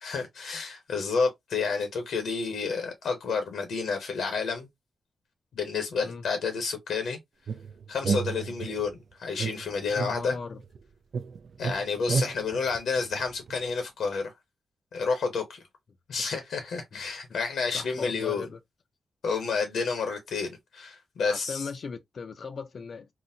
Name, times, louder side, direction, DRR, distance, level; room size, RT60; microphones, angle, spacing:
voice 1, 0.0-4.7 5.5-7.2 7.9-10.4 11.6-14.2 14.9-15.6 16.1-18.5 19.2-21.6, left 5 dB, 85° left, 0.9 m, -30 dB
sound 1, 7.5-8.9 9.4-10.8 11.1-13.7, right 5 dB, 60° right, 0.3 m, -32 dB
voice 2, 9.9-10.6 16.9-17.1 17.7-18.6 21.2-23.1, left 5 dB, 55° left, 0.4 m, -38 dB
3.8 x 2.1 x 2.6 m
wide cardioid pair, 110°, 0 cm